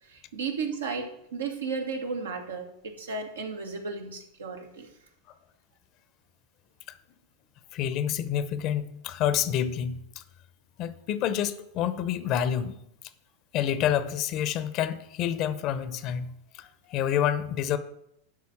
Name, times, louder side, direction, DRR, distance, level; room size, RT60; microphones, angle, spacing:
voice 1, 0.1-4.9, right 4 dB, 85° right, 1.6 m, -34 dB
voice 2, 7.7-10.2 10.8-12.7 13.5-16.3 16.6-17.8, left 10 dB, 45° left, 0.8 m, -28 dB
11.0 x 4.0 x 7.2 m
hypercardioid pair, 95°, 0 cm